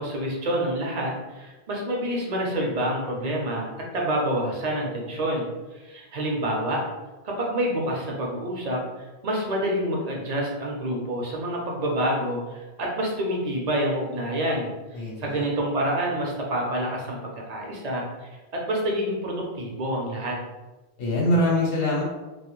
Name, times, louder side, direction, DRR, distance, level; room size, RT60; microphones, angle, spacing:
voice 1, 0.0-3.7 3.9-6.8 7.2-8.8 9.2-17.2 17.5-20.4, right 1 dB, 50° right, -1 dB, 0.6 m, -27 dB
voice 2, 14.9-15.5 21.0-22.0, left 1 dB, 85° left, -4 dB, 1.0 m, -23 dB
2.3 x 2.1 x 3.0 m, 1.1 s
omnidirectional pair, 1.1 m